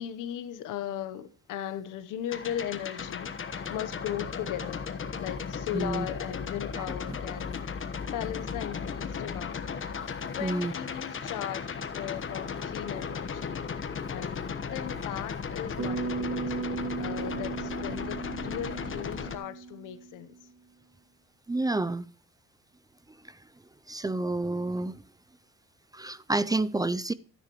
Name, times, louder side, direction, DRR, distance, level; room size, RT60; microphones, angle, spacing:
voice 1, 0.0-4.9 5.2-9.7 10.3-20.4, left 11 dB, 90° left, 1.0 m, -38 dB
sound 1, 2.3-19.4, left 6 dB, 40° left, 1.2 m, -36 dB
voice 2, 10.4-10.7 21.5-22.1 23.9-24.9 25.9-27.1, right 2 dB, 15° right, 0.4 m, -29 dB
Bass guitar, 15.8-20.1, right 4 dB, 70° right, 2.4 m, -35 dB
12.5 x 10.5 x 3.1 m
cardioid pair, 90°, 30 cm